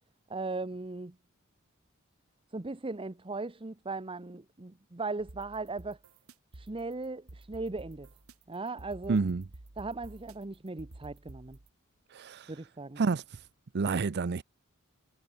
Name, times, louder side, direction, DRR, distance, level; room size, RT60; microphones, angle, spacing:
voice 1, 0.3-1.2 2.5-6.0 6.5-8.1 8.5-9.2 9.8-11.6 12.5-13.0, right 3 dB, 25° right, 0.8 m, -38 dB
sound 1, 5.2-11.7, right 2 dB, 80° right, 1.6 m, -51 dB
voice 2, 9.1-9.4 12.1-12.5 13.0-13.5 13.7-14.4, right 4 dB, 50° right, 0.5 m, -29 dB
head